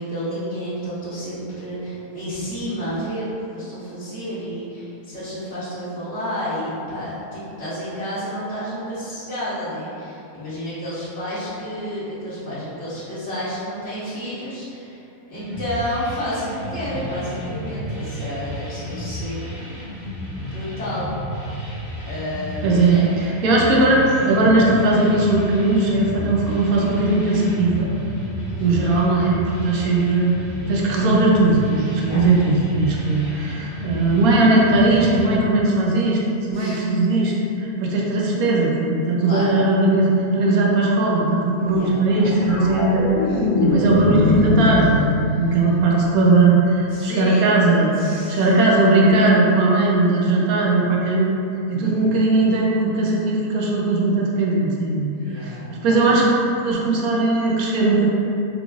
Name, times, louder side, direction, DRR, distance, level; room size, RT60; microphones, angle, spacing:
voice 1, 0.0-15.0 15.3-19.7 20.4-21.1 22.1-23.1 28.5-28.8 29.7-30.0 32.0-32.3 36.5-36.9 39.2-39.5 41.6-42.0 46.9-47.5 47.9-48.5 51.8-52.2 55.1-55.8, equal, 25° left, -13 dB, 1.6 m, -30 dB
sound 1, 15.3-35.3, equal, ahead, 0.9 m, -32 dB
voice 2, 22.6-27.9 28.6-30.3 30.7-36.2 36.5-37.3 37.6-43.3 43.6-51.3 51.7-55.1 55.3-55.6 55.8-56.3 56.6-58.1, right 2 dB, 70° right, -3 dB, 1.0 m, -18 dB
sound 2, 42.1-46.6 49.0-49.2, left 2 dB, 85° left, 1.2 m, -22 dB
3.6 x 3.1 x 2.4 m, 2.8 s
omnidirectional pair, 1.7 m